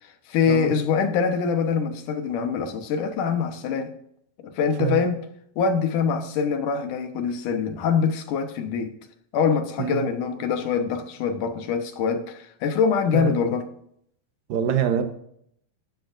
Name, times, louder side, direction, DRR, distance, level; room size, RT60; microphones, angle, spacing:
voice 1, 0.0-3.9 4.4-5.2 5.6-9.0 9.3-13.7, left 6 dB, 70° left, 2.6 m, -24 dB
voice 2, 14.5-15.0, right 9 dB, 80° right, 2.8 m, -24 dB
15.0 x 12.0 x 2.6 m
omnidirectional pair, 3.9 m